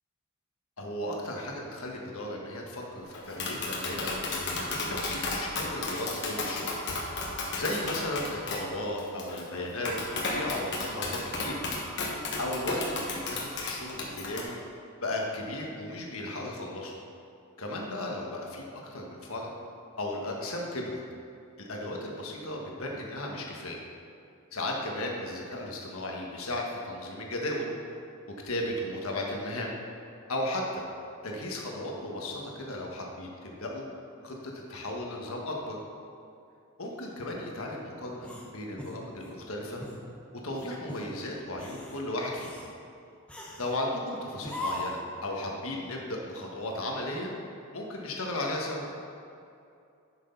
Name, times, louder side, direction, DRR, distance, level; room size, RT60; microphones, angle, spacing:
voice 1, 0.8-6.7 7.6-11.6 12.4-14.5 15.0-16.9 17.6-19.5 20.0-21.0 21.6-23.8 24.5-27.7 28.4-29.7 30.3-30.8 31.2-33.8 34.2-35.8 36.8-39.8 40.3-42.5 43.6-47.3 47.7-48.8, left 1 dB, 75° left, -1 dB, 1.5 m, -35 dB
Tap, 3.1-14.4, left 2 dB, 55° left, 1.3 m, -34 dB
sound 1, 38.2-39.4 39.8-40.0 40.5-41.1 41.5-42.0 42.4-42.7 43.3-43.8 44.4-45.1, left 1 dB, 5° left, 0.9 m, -39 dB
11.0 x 6.4 x 4.0 m, 2.5 s
head